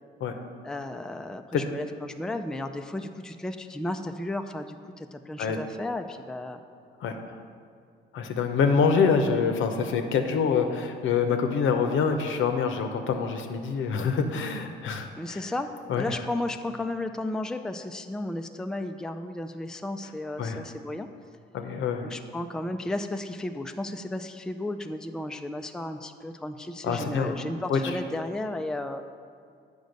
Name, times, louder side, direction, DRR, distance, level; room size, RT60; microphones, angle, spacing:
voice 1, 0.6-6.6 15.2-21.1 22.0-29.0, left 1 dB, 5° left, 7 dB, 0.4 m, -34 dB
voice 2, 7.0-7.4 8.1-15.4 15.9-16.2 20.4-20.6 21.5-22.1 26.8-27.3 27.7-27.8, left 5 dB, 75° left, 6 dB, 0.8 m, -26 dB
8.1 x 5.2 x 5.2 m, 2.3 s
cardioid pair, 90°, 20 cm